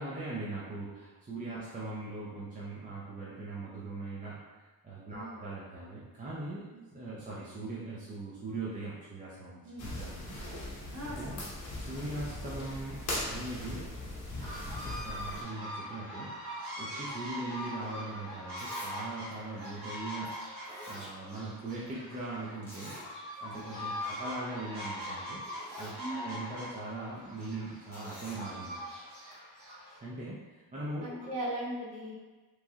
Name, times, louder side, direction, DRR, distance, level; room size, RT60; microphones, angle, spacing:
voice 1, 0.0-4.4 4.8-10.3 11.1-11.4 11.8-13.0 13.3-13.9 14.8-16.3 16.8-20.4 20.9-22.9 23.4-25.4 25.8-28.8 30.0-31.3, right 2 dB, 20° right, -7 dB, 0.4 m, -40 dB
voice 2, 5.1-5.4 6.7-6.8 9.6-9.9 10.9-11.5 11.9-12.0 26.0-26.4 31.0-32.1, right 1 dB, 40° right, -6 dB, 1.0 m, -39 dB
sound 1, 9.8-15.4, left 1 dB, 50° left, 0.9 m, -39 dB
sound 2, 14.4-30.0, equal, 80° right, 1.5 m, -42 dB
Zipper (clothing), 18.6-19.0 19.3-19.4 20.2-20.3 20.6-21.6 21.9-22.0 22.6-23.1 23.5-23.6 23.9-24.1 25.0-25.1 25.4-26.0 27.9-28.4 29.3-29.4, equal, 5° left, 1.0 m, -47 dB
3.0 x 2.3 x 2.7 m, 1.3 s
cardioid pair, 120°, 38 cm